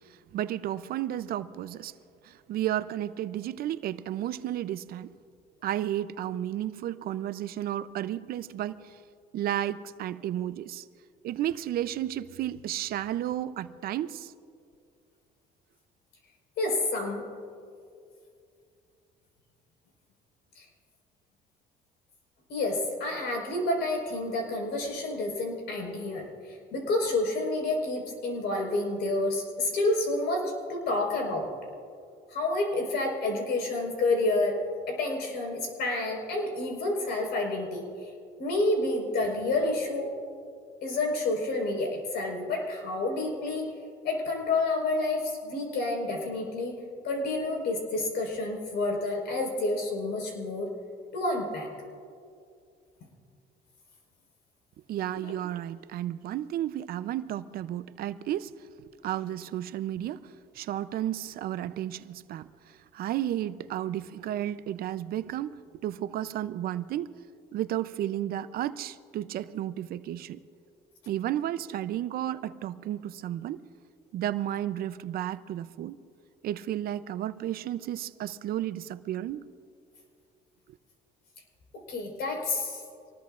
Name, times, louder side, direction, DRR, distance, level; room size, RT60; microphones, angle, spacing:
voice 1, 0.3-1.9 2.2-5.1 5.6-9.0 9.3-10.9 11.2-14.3 54.9-58.5 59.0-65.5 65.8-67.1 67.5-70.4 71.1-73.6 74.1-76.0 76.4-79.4, right 12 dB, 65° right, 0.5 m, -32 dB
voice 2, 16.6-17.2 20.5-20.6 22.5-31.5 32.3-34.6 34.9-38.1 38.4-40.1 40.8-43.7 44.0-46.8 47.0-50.7 51.1-51.7 55.2-55.3 81.9-82.8, left 2 dB, 75° left, 4.6 m, -29 dB
26.0 x 19.5 x 2.5 m
cardioid pair, 110°, 17 cm